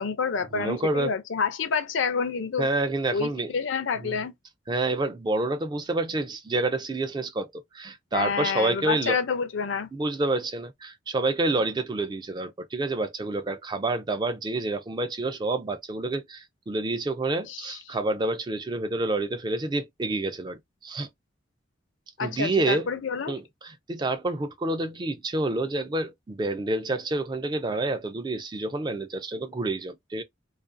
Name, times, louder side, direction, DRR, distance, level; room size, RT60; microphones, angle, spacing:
voice 1, 0.0-2.7 3.1-4.3 8.1-9.9 17.5-17.8 22.2-23.4, left 5 dB, 70° left, 0.5 m, -28 dB
voice 2, 0.5-1.2 2.6-3.5 4.0-4.2 4.7-9.2 9.9-21.1 22.2-22.9 23.3-30.2, right 2 dB, 20° right, 0.3 m, -28 dB
2.4 x 2.3 x 2.5 m
head